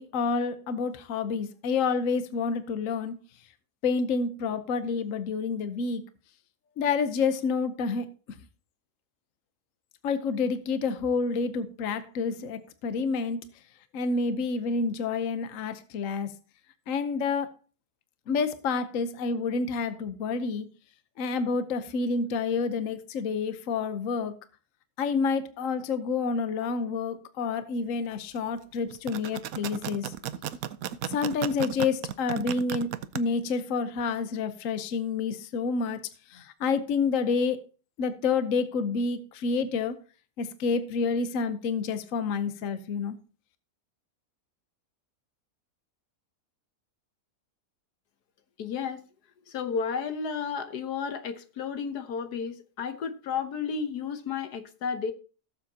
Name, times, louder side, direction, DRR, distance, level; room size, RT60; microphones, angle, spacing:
voice 1, 0.0-3.1 3.8-6.0 6.8-8.1 10.0-13.4 13.9-16.3 16.9-17.5 18.3-20.7 21.2-24.3 25.0-30.1 31.1-36.0 36.3-37.6 38.0-40.0 40.4-43.1, left 4 dB, 60° left, 1.2 m, -28 dB
sound 1, 28.9-33.2, right 11 dB, 70° right, 1.0 m, -34 dB
voice 2, 48.6-49.1 49.5-55.1, left 6 dB, 80° left, 1.6 m, -32 dB
17.5 x 7.3 x 2.8 m
omnidirectional pair, 1.7 m